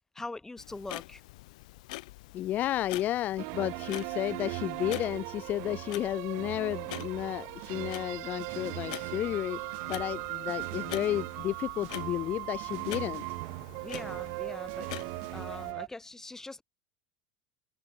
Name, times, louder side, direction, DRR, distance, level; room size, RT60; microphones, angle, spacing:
voice 1, 0.1-1.2 13.8-14.9 15.3-16.6, left 2 dB, 10° left, 6.9 m, -42 dB
Clock, 0.6-15.7, left 20 dB, 75° left, 3.9 m, -46 dB
voice 2, 2.3-9.6 9.9-13.2, left 13 dB, 45° left, 1.4 m, -32 dB
sound 1, 3.4-15.9, right 36 dB, 65° right, 3.9 m, -38 dB
hypercardioid pair, 95°, 4 cm